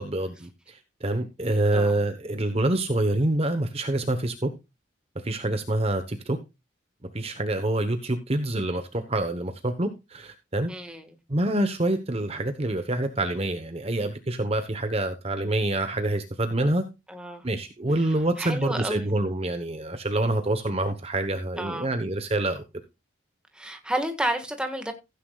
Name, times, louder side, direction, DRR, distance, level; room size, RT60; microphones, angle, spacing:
voice 1, 0.0-4.5 5.1-6.4 7.1-10.7 11.3-16.8 17.4-22.6, right 1 dB, 30° right, 1.0 m, -26 dB
voice 2, 10.7-11.1 17.1-17.5 18.0-19.1 21.6-21.9 23.5-24.9, right 1 dB, 5° right, 1.6 m, -31 dB
15.5 x 9.7 x 2.4 m
head